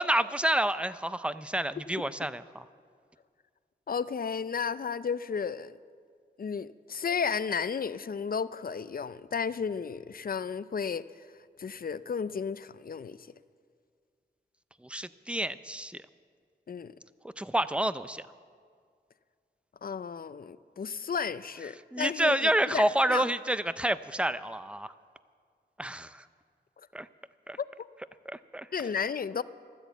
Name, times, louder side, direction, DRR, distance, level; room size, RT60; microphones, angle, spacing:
voice 1, 0.0-2.6 14.8-16.0 17.4-18.2 21.9-24.9 25.8-26.2 26.9-27.1 27.5-27.6 28.3-28.7, right 1 dB, 5° right, 14 dB, 0.5 m, -29 dB
voice 2, 3.9-5.7 6.4-11.0 11.6-13.2 16.7-16.9 19.8-23.3 27.6-27.7 28.7-29.4, left 6 dB, 55° left, 15 dB, 0.5 m, -33 dB
13.5 x 12.5 x 8.1 m, 2.1 s
wide cardioid pair, 80°, 18 cm